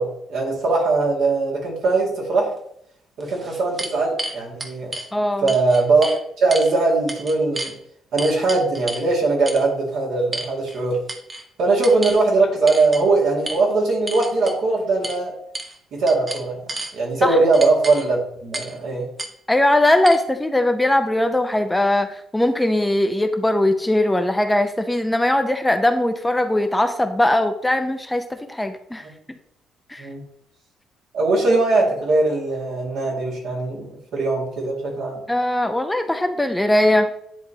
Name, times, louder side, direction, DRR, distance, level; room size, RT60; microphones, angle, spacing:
voice 1, 0.0-2.5 3.2-4.9 5.4-6.1 6.4-7.7 8.1-11.0 11.6-15.3 15.9-19.1 30.0-30.2 31.1-35.2, right 3 dB, 75° right, -3 dB, 2.2 m, -20 dB
sound 1, 2.6-2.7 3.2-5.1 5.5-6.2 6.5-6.7 7.1-7.7 8.2-9.1 9.5-9.7 10.3-10.8 11.1-11.4 11.8-12.2 12.7-13.0 13.5-13.6 14.1-14.6 15.0-15.2 15.5-15.8 16.1-16.9 17.5-18.1 18.5-18.8 19.2-19.3 20.1-20.2, right 2 dB, 30° right, 0.9 m, -31 dB
voice 2, 5.1-5.5 17.2-17.4 19.5-29.1 29.9-30.1 35.3-37.1, left 1 dB, 10° left, 6 dB, 0.6 m, -20 dB
10.0 x 3.6 x 2.8 m, 0.72 s
supercardioid pair, 70°, 0 cm